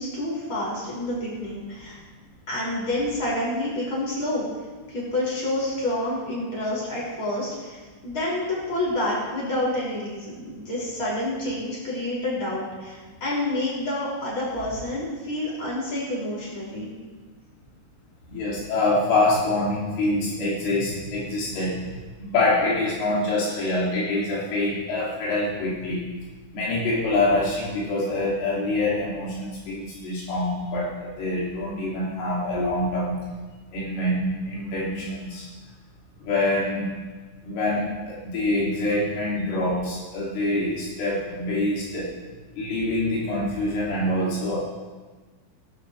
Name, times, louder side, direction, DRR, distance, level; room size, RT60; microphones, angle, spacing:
voice 1, 0.0-2.0 2.5-4.5 4.9-16.9, left 1 dB, 25° left, -6 dB, 6.4 m, -28 dB
voice 2, 18.3-21.8 22.2-26.0 26.5-33.2 33.7-35.5 36.2-36.9 37.4-42.1 42.6-44.6, left 2 dB, 75° left, -6 dB, 5.2 m, -25 dB
23.0 x 12.0 x 3.3 m, 1.3 s
omnidirectional pair, 5.8 m